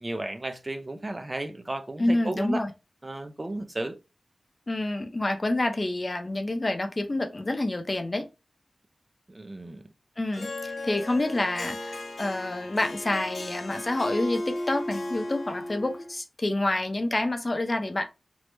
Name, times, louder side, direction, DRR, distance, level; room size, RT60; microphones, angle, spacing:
voice 1, 0.0-2.7 3.0-4.0 9.3-9.8, right 2 dB, 25° right, 0.3 m, -34 dB
voice 2, 2.0-2.7 4.7-8.3 10.2-18.0, left 2 dB, 30° left, 0.5 m, -28 dB
Harp, 10.3-16.1, left 1 dB, 70° left, 0.7 m, -35 dB
3.1 x 2.0 x 3.1 m
wide cardioid pair, 100°, 0 cm